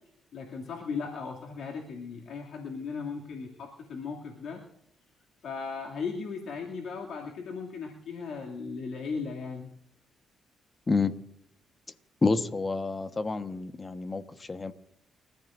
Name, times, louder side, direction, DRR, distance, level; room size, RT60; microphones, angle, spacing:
voice 1, 0.3-4.6 5.4-9.7, left 5 dB, 65° left, -1 dB, 2.5 m, -37 dB
voice 2, 12.2-14.7, left 3 dB, 25° left, 10 dB, 1.2 m, -28 dB
29.5 x 14.5 x 2.6 m, 0.72 s
cardioid pair, 90°, 0 cm